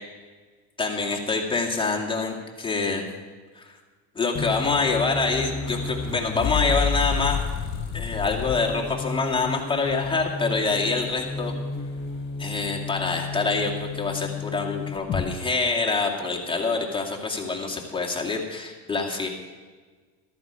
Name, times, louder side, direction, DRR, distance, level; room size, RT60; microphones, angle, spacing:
voice 1, 0.8-3.0 3.6-3.7 4.2-7.4 7.9-11.5 12.4-19.3, left 4 dB, 10° left, -2 dB, 2.2 m, -26 dB
sound 1, 4.4-15.2, left 5 dB, 30° left, 4.1 m, -30 dB
14.0 x 13.5 x 5.0 m, 1.5 s
supercardioid pair, 115°, 41 cm